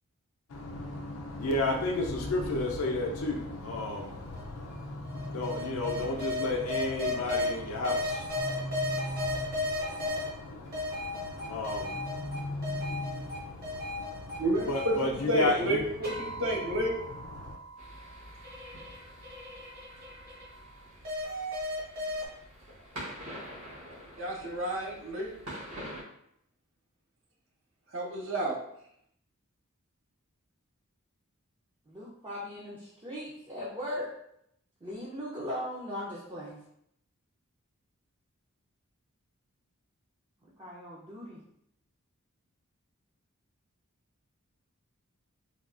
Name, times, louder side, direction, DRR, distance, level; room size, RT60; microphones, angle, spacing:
voice 1, 0.5-15.8 17.3-17.6, left 2 dB, 80° left, 1 dB, 0.5 m, -34 dB
sound 1, 4.3-6.3 7.9-10.0 11.6-13.6, equal, 30° left, 0.5 m, -39 dB
sound 2, 4.3-4.4 5.1-7.5 7.8-10.3 10.7-13.4 13.6-15.6 16.0-20.7 21.0-22.2, left 2 dB, 45° right, 1.1 m, -35 dB
voice 2, 14.4-16.9 24.2-25.3 27.9-28.6, right 1 dB, 60° right, -1 dB, 0.8 m, -30 dB
sound 3, 17.8-26.0, equal, 90° right, 1.1 m, -46 dB
voice 3, 31.9-34.1 34.8-36.6 40.6-41.4, left 1 dB, 20° right, -6 dB, 0.5 m, -38 dB
3.4 x 2.3 x 2.4 m, 0.74 s
head